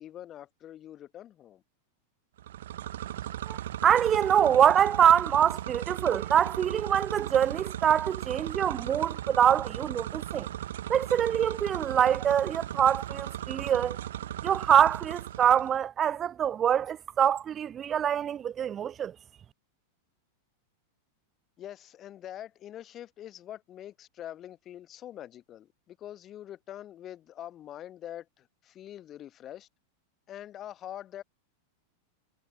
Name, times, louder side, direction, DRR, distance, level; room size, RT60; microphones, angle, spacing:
voice 1, 0.0-1.6 21.6-29.7 30.3-31.2, left 11 dB, 30° left, 1.0 m, -44 dB
sound 1, 2.4-15.8, right 12 dB, 60° right, 0.8 m, -37 dB
voice 2, 3.5-10.5 10.9-14.0 14.4-19.1, right 9 dB, 25° right, 0.4 m, -25 dB
figure-of-eight pair, 90°, 0 cm